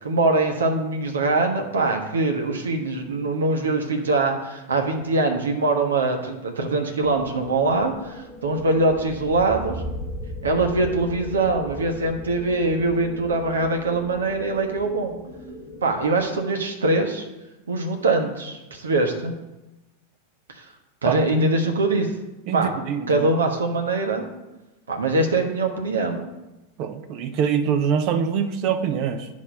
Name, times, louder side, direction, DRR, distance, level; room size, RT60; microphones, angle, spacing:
voice 1, 0.0-9.8 10.4-15.2 15.8-17.2 17.7-19.3 20.5-20.6 21.0-22.1 22.5-22.7 23.1-24.2 24.9-26.2, right 2 dB, 70° right, 3 dB, 1.3 m, -23 dB
sound 1, 7.0-16.4, left 1 dB, 20° left, 1.3 m, -38 dB
voice 2, 22.5-23.3 26.8-29.3, right 7 dB, 40° right, 8 dB, 0.8 m, -24 dB
9.9 x 5.3 x 5.4 m, 1.0 s
figure-of-eight pair, 90°, 0 cm